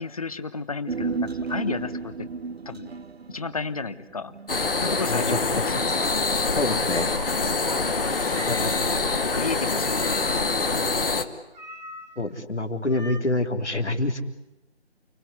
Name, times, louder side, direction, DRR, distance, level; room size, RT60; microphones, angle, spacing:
voice 1, 0.0-2.3 2.6-2.9 3.3-4.3 4.8-6.0 7.9-8.8 9.1-11.3, left 4 dB, 35° left, 13 dB, 1.3 m, -33 dB
Human voice, 0.9-5.5 5.8-5.9, right 4 dB, 65° right, 0.9 m, -33 dB
sound 1, 4.5-11.2, left 3 dB, 55° left, 2.5 m, -25 dB
sound 2, 6.0-6.2 6.6-7.3 7.6-7.9 8.3-9.0 9.8-10.6 11.5-12.3 12.9-13.2, right 1 dB, 40° right, 2.2 m, -41 dB
voice 2, 6.6-7.1 8.5-8.8 12.2-14.2, left 2 dB, 90° left, 5 dB, 3.6 m, -26 dB
29.5 x 19.5 x 9.7 m, 0.95 s
figure-of-eight pair, 170°, 34 cm